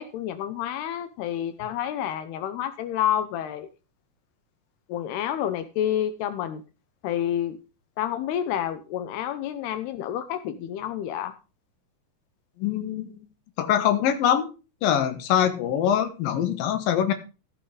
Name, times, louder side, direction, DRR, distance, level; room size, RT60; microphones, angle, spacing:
voice 1, 0.0-3.7 4.9-6.6 7.0-7.6 8.0-11.3, left 10 dB, 85° left, 9 dB, 2.9 m, -29 dB
voice 2, 12.6-13.2 13.6-14.5 14.8-17.1, left 9 dB, 70° left, 7 dB, 3.1 m, -23 dB
15.0 x 6.2 x 5.0 m, 0.32 s
omnidirectional pair, 4.5 m